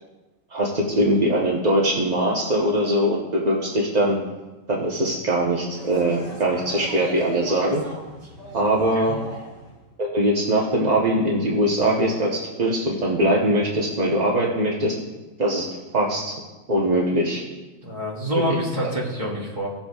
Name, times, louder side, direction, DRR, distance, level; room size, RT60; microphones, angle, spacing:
voice 1, 0.5-4.2 4.7-7.8 8.5-9.2 10.0-14.9 15.4-15.7 15.9-16.3 16.7-17.4, right 1 dB, 35° right, -3 dB, 0.7 m, -21 dB
sound 1, 5.7-9.8, right 1 dB, 75° right, 3.7 m, -39 dB
voice 2, 17.8-19.8, equal, 20° right, -5 dB, 2.0 m, -26 dB
17.5 x 7.0 x 2.3 m, 1.2 s
omnidirectional pair, 2.0 m